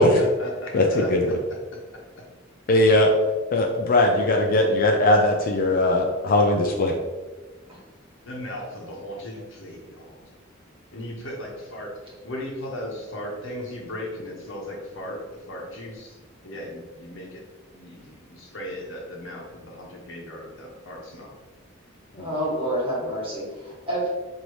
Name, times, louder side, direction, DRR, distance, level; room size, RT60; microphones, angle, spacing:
voice 1, 0.0-1.1 8.2-10.2 10.9-16.2 16.4-17.4 17.7-21.3, left 1 dB, 70° left, -1 dB, 0.9 m, -37 dB
voice 2, 0.7-1.3 2.7-3.1 3.5-6.9 22.1-22.3, left 1 dB, 45° left, 2 dB, 0.4 m, -19 dB
voice 3, 22.2-24.1, right 1 dB, 30° right, -6 dB, 1.4 m, -28 dB
4.6 x 2.7 x 3.1 m, 1.3 s
head